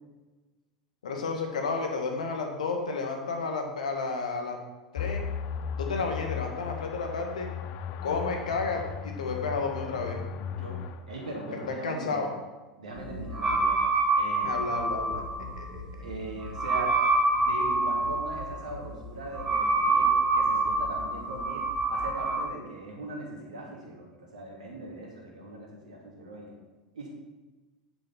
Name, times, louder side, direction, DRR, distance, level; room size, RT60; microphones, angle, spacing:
voice 1, 1.0-4.6 4.9-5.2 5.8-7.5 8.0-10.2 11.7-12.3 14.4-15.2 15.6-15.8, left 4 dB, 75° left, 3 dB, 1.7 m, -31 dB
sound 1, 5.0-11.7, left 8 dB, 50° left, 0.6 m, -36 dB
voice 2, 10.5-12.3 12.8-13.8 14.2-14.6 16.0-17.0 17.4-26.6 26.9-27.1, right 2 dB, 80° right, -1 dB, 2.6 m, -40 dB
sound 2, 13.0-22.4, right 2 dB, 25° right, 2.9 m, -27 dB
8.9 x 7.1 x 5.7 m, 1.2 s
figure-of-eight pair, 80°, 4 cm